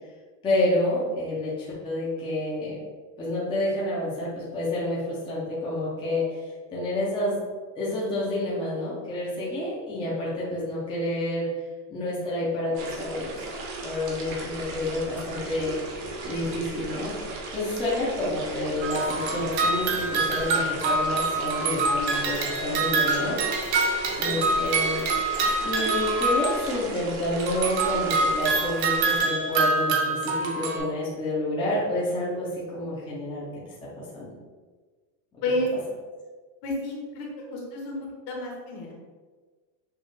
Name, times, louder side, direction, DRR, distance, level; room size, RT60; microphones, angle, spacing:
voice 1, 0.4-2.8 3.2-6.4 6.7-7.4 7.8-11.5 11.9-13.4 13.8-15.7 16.2-17.1 17.5-23.4 24.2-25.0 25.6-33.5 34.0-34.3, left 1 dB, 10° left, -7 dB, 0.5 m, -29 dB
sound 1, 12.7-29.2, right 2 dB, 85° right, 1.3 m, -36 dB
sound 2, 18.8-27.0 27.4-30.8, right 3 dB, 60° right, 1.0 m, -26 dB
voice 2, 36.6-38.0 38.3-38.9, left 1 dB, 50° left, -2 dB, 1.2 m, -30 dB
6.5 x 2.4 x 3.1 m, 1.4 s
cardioid pair, 170°, 49 cm